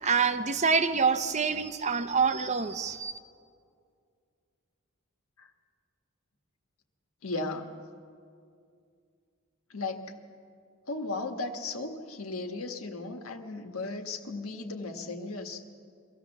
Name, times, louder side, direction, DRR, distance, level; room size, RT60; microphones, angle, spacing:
voice 1, 0.0-3.1, right 5 dB, 35° right, 11 dB, 0.7 m, -26 dB
voice 2, 7.2-7.7 9.7-10.1 10.9-15.6, left 3 dB, 85° left, 4 dB, 1.5 m, -36 dB
24.0 x 15.0 x 7.1 m, 2.3 s
head